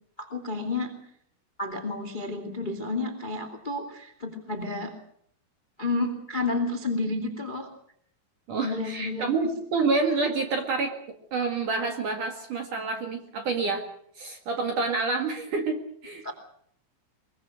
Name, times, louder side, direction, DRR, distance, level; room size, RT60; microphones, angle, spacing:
voice 1, 0.2-1.0 1.6-4.9 5.8-7.7 8.6-9.3 16.2-16.3, left 2 dB, 20° left, 7 dB, 1.3 m, -31 dB
voice 2, 8.5-10.9 11.3-13.8 14.2-16.3, right 4 dB, 50° right, 4 dB, 2.7 m, -28 dB
23.0 x 22.5 x 6.4 m, 0.65 s
omnidirectional pair, 5.9 m